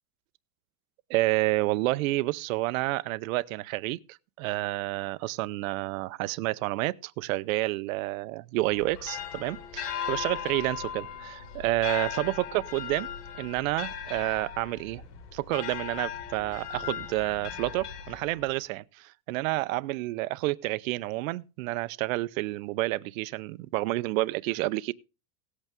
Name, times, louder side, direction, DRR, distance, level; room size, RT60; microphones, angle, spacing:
voice 1, 1.1-13.1 13.3-15.0 15.3-24.9, right 19 dB, 60° right, 0.6 m, -29 dB
sound 1, 8.7-18.6, left 8 dB, 75° left, 2.3 m, -38 dB
17.5 x 8.2 x 3.5 m
supercardioid pair, 170°, 47 cm